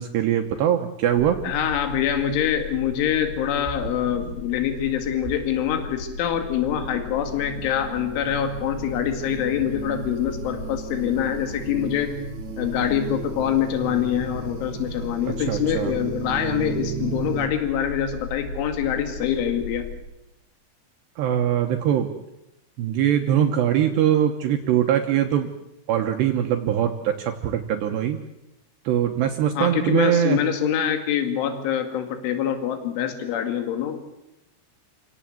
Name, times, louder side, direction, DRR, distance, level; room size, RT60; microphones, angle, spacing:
voice 1, 0.0-1.4 15.5-15.9 21.2-22.1 22.8-25.5 25.9-28.2 28.8-30.4, right 10 dB, 70° right, 4 dB, 2.9 m, -22 dB
sound 1, 1.1-20.0, left 3 dB, 45° left, 8.2 m, -37 dB
voice 2, 1.4-12.1 12.6-19.9 29.6-34.0, left 9 dB, 75° left, 6 dB, 4.5 m, -25 dB
sound 2, 6.4-17.5, right 7 dB, 50° right, 2.5 m, -36 dB
28.5 x 17.5 x 7.8 m, 0.92 s
omnidirectional pair, 5.8 m